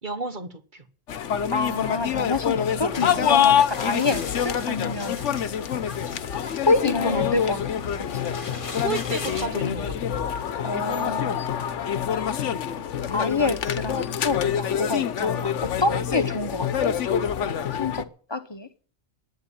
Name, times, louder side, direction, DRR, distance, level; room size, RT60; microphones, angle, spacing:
voice 1, 0.0-0.8 7.0-7.2 8.8-10.1, right 3 dB, 45° right, 1.3 m, -32 dB
sound 1, 1.1-18.0, left 9 dB, 85° left, 1.2 m, -26 dB
voice 2, 1.5-5.2 6.6-7.8 8.1-8.2 10.6-11.4 13.1-17.0 17.7-18.7, left 3 dB, 25° left, 0.9 m, -27 dB
sound 2, 2.9-9.5, left 4 dB, 50° left, 1.3 m, -38 dB
10.5 x 9.3 x 9.9 m
omnidirectional pair, 1.2 m